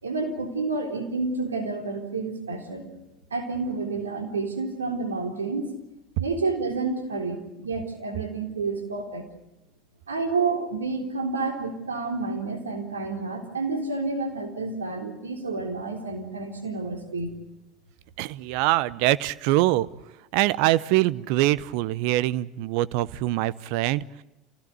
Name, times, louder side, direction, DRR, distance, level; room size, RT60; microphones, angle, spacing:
voice 1, 0.0-2.9 3.3-5.7 6.2-9.3 10.1-17.3, right 3 dB, 90° right, 3 dB, 3.7 m, -29 dB
voice 2, 18.2-19.9 20.3-24.2, right 16 dB, 65° right, 18 dB, 0.8 m, -24 dB
27.0 x 17.0 x 9.4 m, 0.97 s
hypercardioid pair, 75°, 0 cm